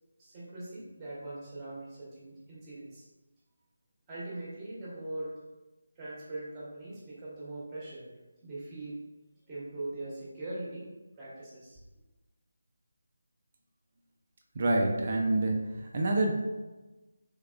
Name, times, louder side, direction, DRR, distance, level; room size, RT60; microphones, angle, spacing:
voice 1, 0.2-3.0 4.1-5.4 6.0-8.1 8.4-9.0 9.5-10.9 11.2-11.8, right 2 dB, 15° right, -7 dB, 1.0 m, -41 dB
voice 2, 14.5-16.3, right 2 dB, 40° right, 1 dB, 0.4 m, -27 dB
3.5 x 3.3 x 2.4 m, 1.1 s
figure-of-eight pair, 170°, 0 cm